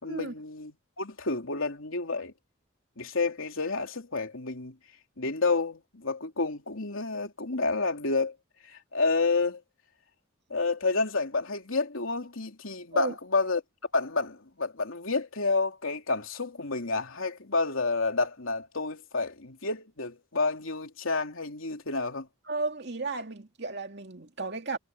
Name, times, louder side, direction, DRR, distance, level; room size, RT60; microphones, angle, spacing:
voice 1, 0.0-2.3 3.0-4.7 5.2-8.3 8.7-9.6 10.5-13.6 13.9-22.3, left 3 dB, 80° left, 3.1 m, -29 dB
voice 2, 22.5-24.8, right 3 dB, 55° right, 2.6 m, -34 dB
head